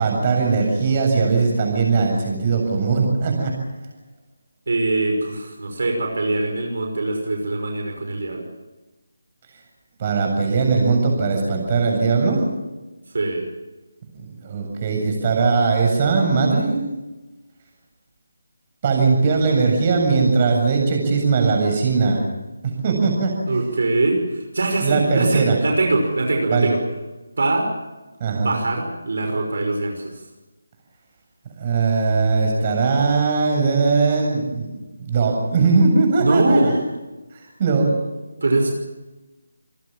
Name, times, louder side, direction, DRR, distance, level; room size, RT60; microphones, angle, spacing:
voice 1, 0.0-3.5 10.0-12.4 14.1-16.8 18.8-22.2 22.6-23.3 24.8-25.6 26.5-26.7 28.2-28.5 31.6-34.7 35.0-36.8 37.3-37.9, right 4 dB, 30° right, 2 dB, 7.5 m, -19 dB
voice 2, 4.7-8.4 13.1-13.5 23.5-26.8 27.4-27.7 28.3-30.1 36.2-36.7 38.4-38.7, right 2 dB, 65° right, 3 dB, 5.7 m, -22 dB
28.5 x 18.5 x 7.5 m, 1.1 s
figure-of-eight pair, 165°, 0 cm